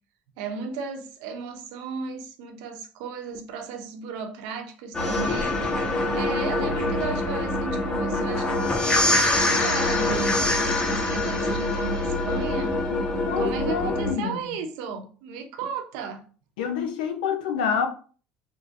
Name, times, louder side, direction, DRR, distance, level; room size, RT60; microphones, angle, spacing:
voice 1, 0.4-5.6 6.1-12.8 13.4-16.2, right 5 dB, 75° right, 0.7 m, -35 dB
sound 1, 4.9-14.1, left 2 dB, 25° left, 1.2 m, -24 dB
voice 2, 13.3-14.6 16.6-17.9, left 7 dB, 85° left, 0.6 m, -27 dB
3.7 x 2.7 x 2.6 m
supercardioid pair, 90°, 4 cm